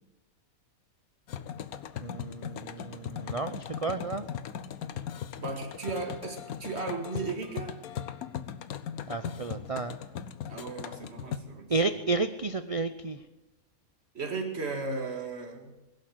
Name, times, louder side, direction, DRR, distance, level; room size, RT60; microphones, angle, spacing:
sound 1, 1.3-11.4, left 9 dB, 85° left, 1.3 m, -39 dB
voice 1, 2.0-4.3 9.1-10.0 11.7-13.2, right 3 dB, 65° right, 10 dB, 0.3 m, -31 dB
voice 2, 5.4-7.8 10.5-11.7 14.1-15.8, right 3 dB, 45° right, 3 dB, 2.2 m, -35 dB
21.5 x 7.8 x 7.8 m, 1.1 s
omnidirectional pair, 1.5 m